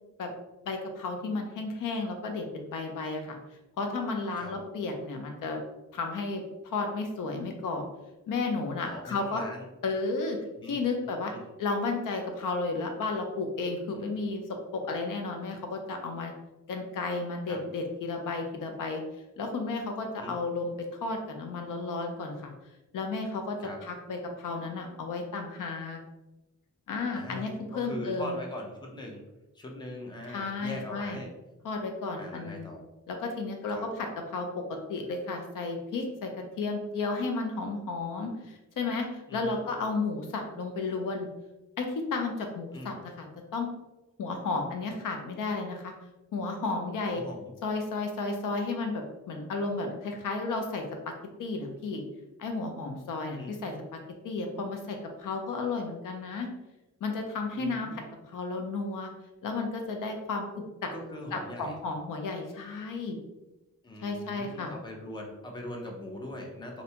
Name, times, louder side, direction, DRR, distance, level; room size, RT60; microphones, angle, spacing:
voice 1, 0.7-3.4 3.8-5.6 5.9-7.8 8.3-9.4 9.8-10.4 10.6-11.3 11.6-14.4 14.7-16.3 16.7-19.0 19.4-20.7 21.0-22.5 22.9-26.0 26.9-28.3 30.3-31.2 31.6-32.7 33.1-34.6 34.9-36.3 36.6-41.3 41.8-43.3 43.5-43.7 44.2-45.9 46.3-47.2 47.6-50.8 51.4-52.0 52.4-53.8 54.2-56.5 57.0-58.0 58.3-59.1 59.4-60.9 61.3-63.2 64.0-64.7, left 3 dB, 80° left, 3 dB, 0.5 m, -33 dB
voice 2, 8.9-9.7 10.6-11.4 13.9-14.0 17.5-17.6 20.2-20.4 23.6-23.8 27.1-29.2 29.5-31.3 32.1-32.8 33.7-33.9 39.3-39.6 42.7-42.9 47.1-47.5 53.3-53.6 57.6-58.1 60.9-61.8 63.8-66.8, left 1 dB, 15° left, 1 dB, 0.3 m, -41 dB
2.7 x 2.1 x 2.7 m, 1.0 s
wide cardioid pair, 175°, 31 cm